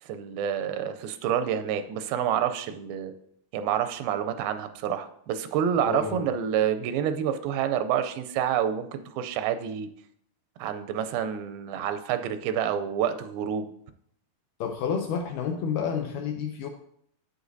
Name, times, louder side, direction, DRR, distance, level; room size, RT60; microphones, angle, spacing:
voice 1, 0.1-3.1 3.5-9.9 10.6-13.7, right 9 dB, 85° right, 9 dB, 2.4 m, -28 dB
voice 2, 5.9-6.3 14.6-16.7, left 7 dB, 85° left, 5 dB, 1.9 m, -30 dB
8.0 x 8.0 x 2.6 m, 0.69 s
omnidirectional pair, 4.2 m